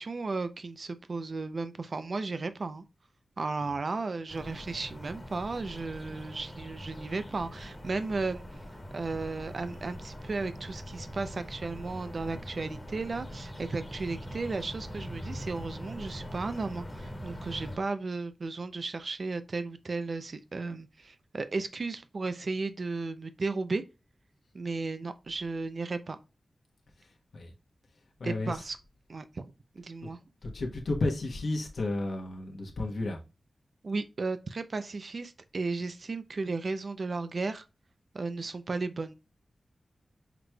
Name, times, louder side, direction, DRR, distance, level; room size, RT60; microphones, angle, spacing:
voice 1, 0.0-2.8 3.4-8.4 8.7-23.8 24.5-26.2 28.2-28.8 29.1-30.2 33.8-37.6 38.1-39.1, right 3 dB, 50° right, 0.4 m, -34 dB
sound 1, 4.3-17.8, equal, 20° left, 1.4 m, -42 dB
voice 2, 28.2-28.6 30.0-30.1 30.4-33.2, left 2 dB, 65° left, 1.0 m, -32 dB
5.9 x 3.1 x 2.2 m
wide cardioid pair, 140°, 0 cm